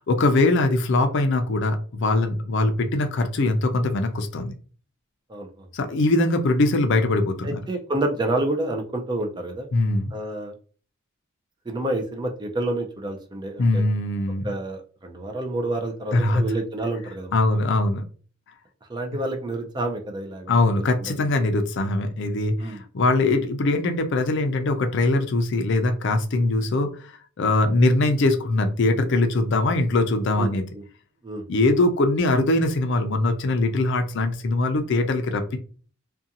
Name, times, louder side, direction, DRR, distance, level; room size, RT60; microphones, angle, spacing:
voice 1, 0.0-4.5 5.7-7.6 9.7-10.1 13.6-14.5 16.1-16.4 17.3-18.0 20.5-27.1 27.4-30.6 31.5-35.6, left 2 dB, 60° left, 7 dB, 0.4 m, -22 dB
voice 2, 5.3-5.7 7.4-9.7 10.1-10.5 11.7-13.8 14.4-17.4 18.9-21.3 22.6-22.8 30.4-30.8 31.2-31.5, right 2 dB, 20° right, 3 dB, 0.4 m, -29 dB
2.5 x 2.2 x 2.7 m, 0.40 s
head